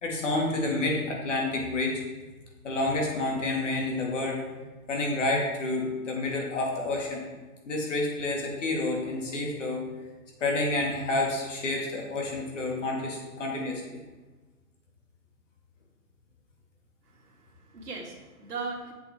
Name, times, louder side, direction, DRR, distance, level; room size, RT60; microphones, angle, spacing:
voice 1, 0.0-2.0 2.6-4.6 4.9-7.3 7.7-9.9 10.4-14.0, left 2 dB, 50° left, -1 dB, 2.1 m, -29 dB
voice 2, 17.1-18.9, right 4 dB, 85° right, -1 dB, 2.2 m, -39 dB
8.3 x 6.3 x 3.5 m, 1.3 s
hypercardioid pair, 165°, 46 cm